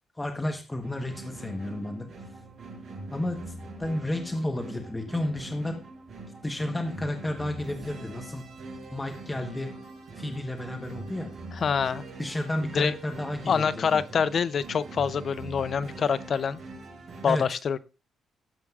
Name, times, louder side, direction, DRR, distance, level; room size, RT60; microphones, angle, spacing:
voice 1, 0.2-2.1 3.1-3.5 3.8-5.7 6.4-8.5 8.9-9.7 10.1-11.3 12.2-14.0 17.3-17.4, left 1 dB, 15° left, 1.1 m, -32 dB
sound 1, 0.8-17.3, right 2 dB, 50° right, 5.6 m, -43 dB
voice 2, 11.5-12.0 12.7-12.9 13.5-16.6 17.2-17.8, left 6 dB, 50° left, 0.5 m, -26 dB
15.0 x 7.4 x 2.4 m
cardioid pair, 90°, 0 cm